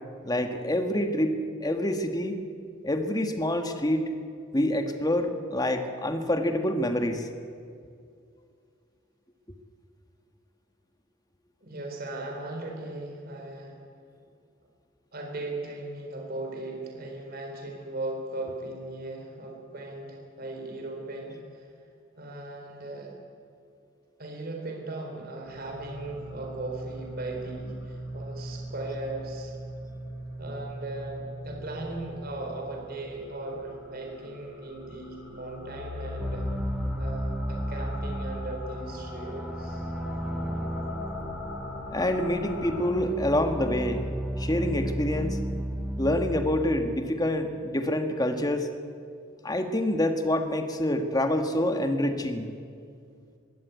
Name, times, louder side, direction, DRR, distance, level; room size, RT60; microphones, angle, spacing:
voice 1, 0.2-2.4 2.8-4.1 4.5-7.3 41.9-44.1 44.4-45.4 46.0-48.7 49.4-52.5, left 1 dB, 20° left, 6 dB, 1.6 m, -27 dB
voice 2, 11.6-13.7 15.1-21.7 22.2-23.1 24.2-29.5 30.4-36.5 37.0-39.9, right 2 dB, 50° right, 1 dB, 3.9 m, -38 dB
sound 1, 25.5-42.9, left 1 dB, 70° left, 4.4 m, -40 dB
sound 2, 36.2-47.0, right 1 dB, 5° right, 0.6 m, -34 dB
22.0 x 16.5 x 9.4 m, 2.3 s
head